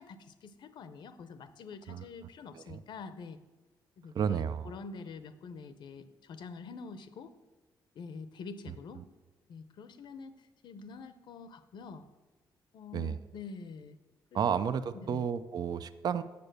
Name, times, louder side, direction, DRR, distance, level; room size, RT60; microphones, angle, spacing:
voice 1, 0.0-3.4 4.0-7.3 8.0-9.0 9.5-12.0 12.7-14.0 14.3-14.7 15.0-15.2, left 4 dB, 70° left, 12 dB, 0.7 m, -46 dB
voice 2, 4.1-4.7 8.7-9.0 12.9-13.2 14.3-16.2, right 7 dB, 55° right, 13 dB, 0.4 m, -32 dB
7.0 x 6.8 x 6.5 m, 1.2 s
cardioid pair, 85°, 8 cm